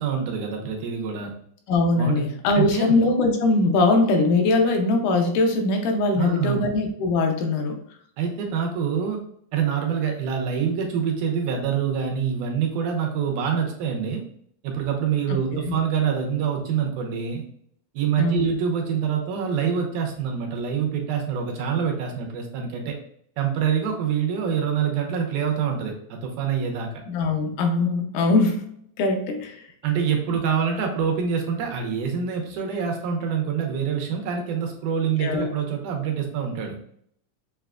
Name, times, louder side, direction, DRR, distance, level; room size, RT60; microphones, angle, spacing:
voice 1, 0.0-1.3 2.0-2.3 2.5-3.0 6.1-6.7 8.2-9.2 9.5-14.2 14.6-17.4 17.9-23.0 23.4-26.9 29.8-36.8, right 7 dB, 80° right, 1 dB, 2.3 m, -25 dB
voice 2, 1.7-7.8 15.5-15.6 18.2-18.5 27.1-28.7 29.0-29.7 35.2-35.5, left 2 dB, 85° left, 4 dB, 2.3 m, -21 dB
7.0 x 2.4 x 2.2 m, 0.66 s
omnidirectional pair, 3.6 m